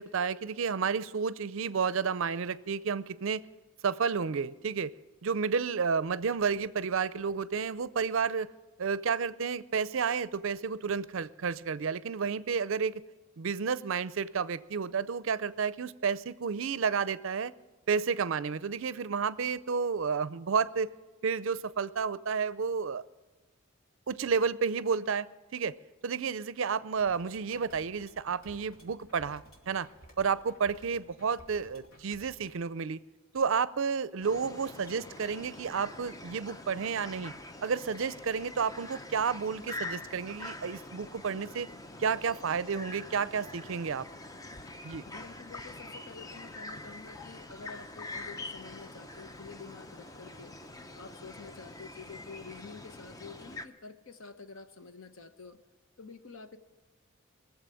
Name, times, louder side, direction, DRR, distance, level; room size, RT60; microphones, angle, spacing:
voice 1, 0.0-3.4 3.8-4.9 5.2-8.5 8.8-13.0 13.4-17.5 17.9-20.9 21.2-23.0 24.1-25.3 25.5-25.7 26.0-29.9 30.2-33.0 33.3-37.3 37.6-41.7 42.0-44.1 44.8-45.0, right 6 dB, 65° right, 17 dB, 0.5 m, -31 dB
sound 1, 27.0-32.5, right 1 dB, 85° left, 3.0 m, -56 dB
sound 2, 34.2-53.7, left 2 dB, 15° left, 0.6 m, -45 dB
voice 2, 45.0-50.6 50.9-55.6 56.0-56.6, left 4 dB, 65° left, 9 dB, 1.0 m, -48 dB
20.5 x 7.4 x 7.6 m, 1.2 s
head